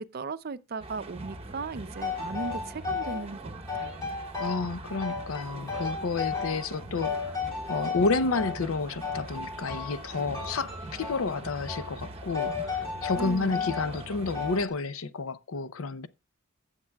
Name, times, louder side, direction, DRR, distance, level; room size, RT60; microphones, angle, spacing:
voice 1, 0.0-4.2 13.1-13.8, right 4 dB, 45° right, 0.5 m, -37 dB
sound 1, 0.8-14.7, right 2 dB, 30° right, 0.9 m, -42 dB
sound 2, 2.0-3.2 3.7-4.7 5.0-6.7 7.0-8.6 9.0-10.1 10.3-11.3 11.7-11.9 12.3-13.9 14.3-14.7, left 5 dB, 15° left, 3.4 m, -34 dB
voice 2, 4.4-7.1 7.7-16.1, left 4 dB, 75° left, 0.6 m, -30 dB
15.0 x 7.3 x 2.3 m
head